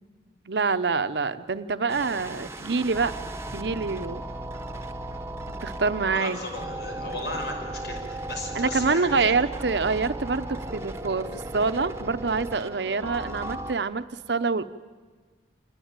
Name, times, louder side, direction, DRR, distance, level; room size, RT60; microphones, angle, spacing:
voice 1, 0.5-3.1 3.5-4.2 5.6-6.4 8.5-14.7, right 4 dB, 80° right, 11 dB, 0.8 m, -26 dB
sound 1, 1.9-13.7, right 1 dB, 15° right, 1.1 m, -36 dB
voice 2, 6.1-9.3, left 2 dB, 75° left, 2 dB, 5.8 m, -36 dB
27.0 x 20.5 x 9.0 m, 1.4 s
head